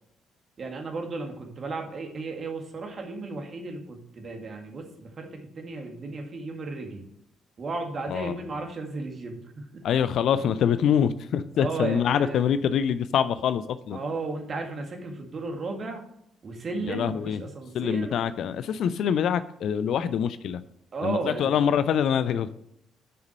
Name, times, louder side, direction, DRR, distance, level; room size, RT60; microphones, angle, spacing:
voice 1, 0.6-7.1 7.6-9.8 11.6-12.4 13.9-16.1 16.4-18.1 20.9-21.6, right 3 dB, 40° right, 3 dB, 2.0 m, -34 dB
voice 2, 9.8-14.0 16.8-17.4 17.7-20.6 21.0-22.5, left 8 dB, 60° left, 14 dB, 0.5 m, -25 dB
6.9 x 6.7 x 6.4 m, 0.76 s
figure-of-eight pair, 45°, 0 cm